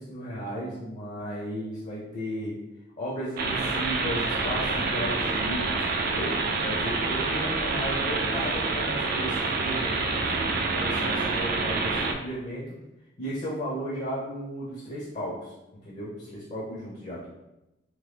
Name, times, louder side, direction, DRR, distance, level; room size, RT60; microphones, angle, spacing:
voice 1, 0.0-2.6 3.0-6.4 6.6-12.7 13.2-15.5 15.8-17.3, equal, 40° left, -6 dB, 0.6 m, -35 dB
sound 1, 3.4-12.1, right 3 dB, 55° right, 0.3 m, -27 dB
2.9 x 2.1 x 3.3 m, 0.94 s
head